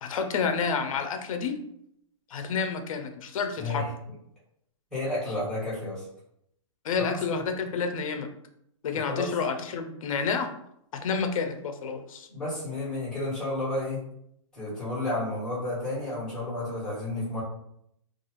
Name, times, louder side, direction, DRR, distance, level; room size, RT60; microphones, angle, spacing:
voice 1, 0.0-1.6 2.3-3.9 6.8-8.3 8.8-10.5 10.9-12.3, left 5 dB, 80° left, 6 dB, 0.5 m, -29 dB
voice 2, 3.6-3.9 4.9-6.1 7.0-7.2 8.9-9.3 12.3-14.1 14.5-17.4, left 2 dB, 5° left, -10 dB, 1.2 m, -31 dB
2.4 x 2.3 x 3.0 m, 0.74 s
hypercardioid pair, 160°, 17 cm